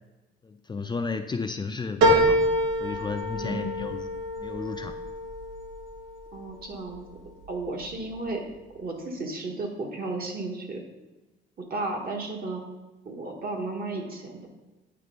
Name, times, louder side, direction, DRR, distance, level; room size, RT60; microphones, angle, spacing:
voice 1, 0.4-2.4 2.8-4.1 4.4-5.0, left 4 dB, 20° left, 6 dB, 0.4 m, -33 dB
sound 1, 2.0-6.8 7.3-8.0 8.3-8.4, equal, 80° right, 1.3 m, -26 dB
voice 2, 3.4-3.9 6.3-7.0 7.5-8.4 8.7-10.8 11.7-12.6 13.0-14.5, right 2 dB, 50° right, 1 dB, 1.5 m, -33 dB
9.4 x 3.3 x 5.3 m, 1.1 s
cardioid pair, 90°, 20 cm